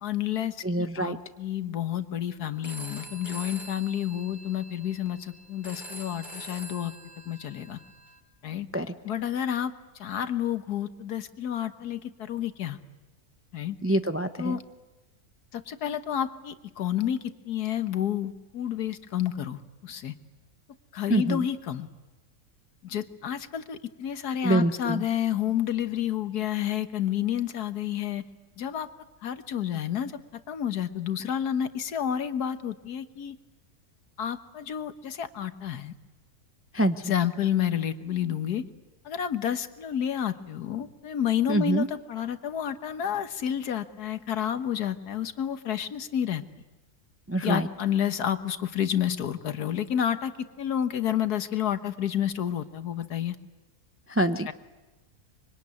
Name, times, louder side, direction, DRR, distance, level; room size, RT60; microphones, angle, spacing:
voice 1, 0.0-6.9 7.3-7.8 8.4-8.7 9.0-9.7 10.0-12.8 13.5-13.8 14.4-14.6 15.5-20.2 20.9-21.9 22.8-28.2 28.6-28.9 29.2-33.4 34.2-35.9 37.0-38.6 39.1-46.4 47.4-53.4 54.5-54.6, left 10 dB, 80° left, 10 dB, 1.7 m, -30 dB
voice 2, 0.6-1.2 8.7-8.9 13.8-14.6 21.1-21.4 24.4-25.0 36.7-37.0 41.5-41.9 47.3-47.7 54.1-54.5, right 1 dB, 15° right, 9 dB, 0.5 m, -25 dB
Telephone, 2.6-8.2, right 1 dB, 30° left, 3.6 m, -45 dB
25.0 x 24.0 x 9.6 m, 1.1 s
omnidirectional pair, 1.6 m